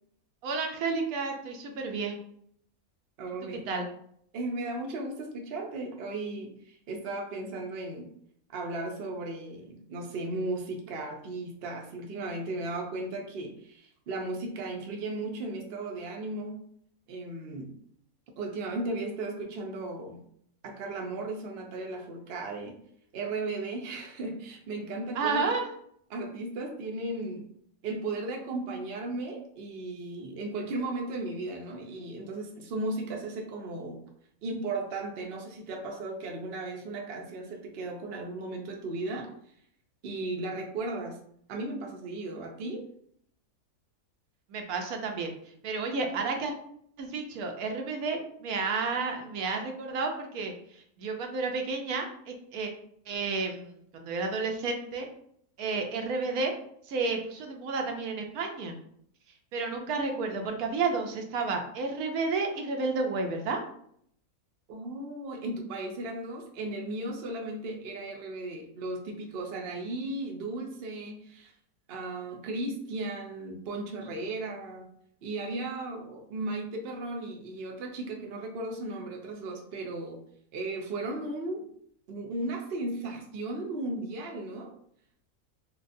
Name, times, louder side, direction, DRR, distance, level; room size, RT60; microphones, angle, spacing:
voice 1, 0.4-2.2 3.7-3.8 25.1-25.6 44.5-45.3 45.6-46.5 47.0-52.7 53.1-55.1 55.6-56.5 56.9-58.7 59.5-63.6, right 4 dB, 80° right, 3 dB, 1.1 m, -31 dB
voice 2, 3.2-3.8 4.3-8.1 8.5-16.6 17.1-17.7 18.4-20.2 20.6-22.8 23.1-25.5 26.1-27.4 27.8-34.0 34.4-39.3 40.0-41.2 41.5-42.9 64.7-71.5 71.9-74.9 75.2-80.2 80.5-81.6 82.1-84.7, right 2 dB, 55° right, 1 dB, 0.7 m, -36 dB
4.4 x 2.3 x 2.6 m, 0.66 s
omnidirectional pair, 1.5 m